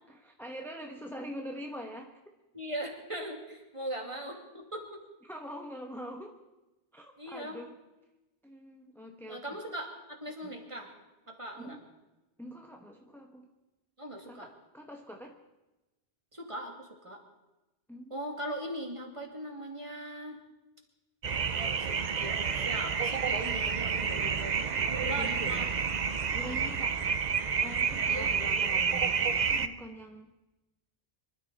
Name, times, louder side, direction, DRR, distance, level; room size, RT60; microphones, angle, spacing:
voice 1, 0.1-2.1 5.2-6.4 6.9-7.8 8.4-9.4 10.4-10.6 11.6-11.8 12.4-13.5 14.3-15.4 17.9-18.1 24.0-24.4 25.1-25.7 26.3-27.0 27.6-30.4, equal, ahead, 2 dB, 1.1 m, -44 dB
voice 2, 2.5-5.0 7.2-7.6 9.3-10.9 11.3-11.8 14.0-14.5 16.3-17.2 18.1-20.4 21.5-25.7 26.5-26.7 28.1-28.6, right 1 dB, 30° right, 1 dB, 2.4 m, -40 dB
sound 1, 21.2-29.7, right 6 dB, 45° right, 0.7 m, -29 dB
25.0 x 13.0 x 4.1 m, 1.0 s
omnidirectional pair, 1.1 m